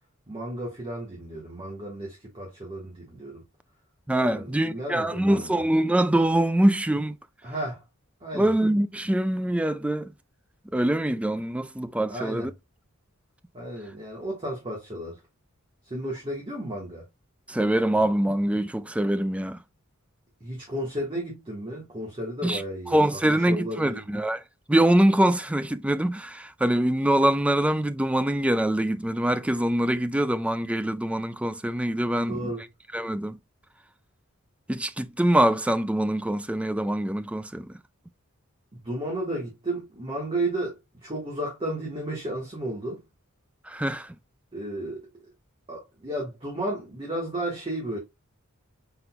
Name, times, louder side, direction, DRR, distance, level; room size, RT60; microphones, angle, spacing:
voice 1, 0.3-3.4 4.3-5.6 7.4-7.8 8.2-8.5 12.1-12.5 13.5-15.2 15.8-17.0 20.4-24.0 32.1-32.6 38.7-43.0 44.5-45.0 45.7-48.0, right 1 dB, 25° right, 1.5 m, -33 dB
voice 2, 4.1-7.2 8.3-10.1 10.7-12.5 17.5-19.6 22.4-22.6 22.9-24.4 24.7-32.5 32.9-33.4 34.7-37.7 43.7-44.2, right 1 dB, 5° right, 0.3 m, -24 dB
6.0 x 3.9 x 2.2 m
head